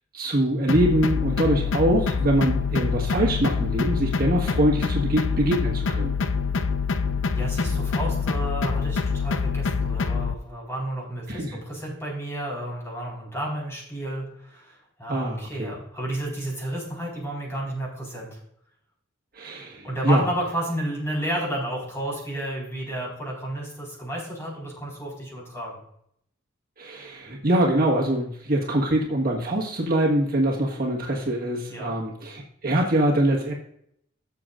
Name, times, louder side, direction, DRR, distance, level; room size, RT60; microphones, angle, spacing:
voice 1, 0.1-6.1 11.3-11.6 15.1-15.7 19.3-20.2 26.8-33.5, right 1 dB, 50° right, -2 dB, 1.5 m, -24 dB
sound 1, 0.7-10.4, left 5 dB, 85° left, 0.6 m, -25 dB
voice 2, 7.3-18.3 19.8-25.8 31.7-32.0, right 1 dB, 15° left, -3 dB, 4.3 m, -32 dB
15.0 x 7.0 x 2.5 m, 0.71 s
head